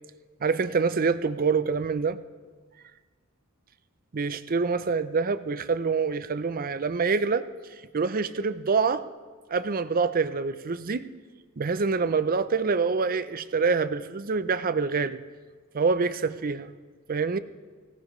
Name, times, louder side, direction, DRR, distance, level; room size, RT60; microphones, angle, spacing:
voice 1, 0.4-2.2 4.1-7.5 7.9-9.1 9.5-11.1 11.6-15.2 15.7-16.7 17.1-17.4, right 4 dB, 45° right, 13 dB, 0.5 m, -26 dB
24.0 x 17.0 x 3.2 m, 1.5 s
head